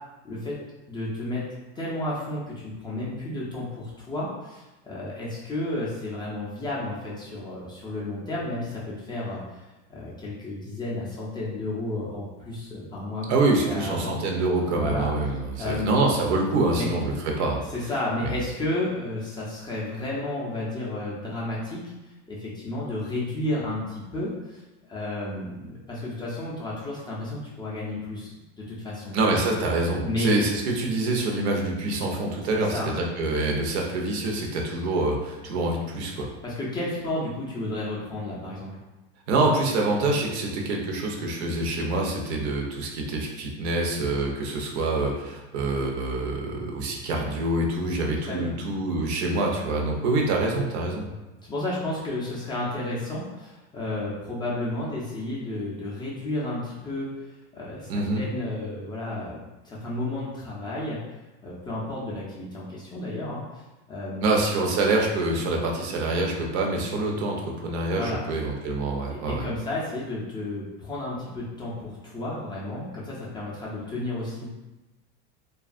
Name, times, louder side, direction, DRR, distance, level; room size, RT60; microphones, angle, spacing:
voice 1, 0.2-0.6 0.9-1.4 1.8-9.6 9.9-13.3 13.6-14.2 14.7-15.1 15.6-16.1 16.7-16.9 17.7-21.9 22.3-24.6 24.9-29.2 30.0-30.3 32.6-32.9 36.4-38.7 48.3-48.5 51.4-57.2 57.5-59.4 59.6-61.0 61.4-63.6 63.9-64.3 67.9-68.2 69.1-74.5, left 2 dB, 15° left, -7 dB, 0.3 m, -32 dB
voice 2, 13.3-17.6 18.2-18.3 29.1-36.3 39.3-51.0 57.9-58.2 64.2-69.5, right 2 dB, 75° right, 1 dB, 0.7 m, -26 dB
2.7 x 2.3 x 2.4 m, 1.1 s
supercardioid pair, 140°, 33 cm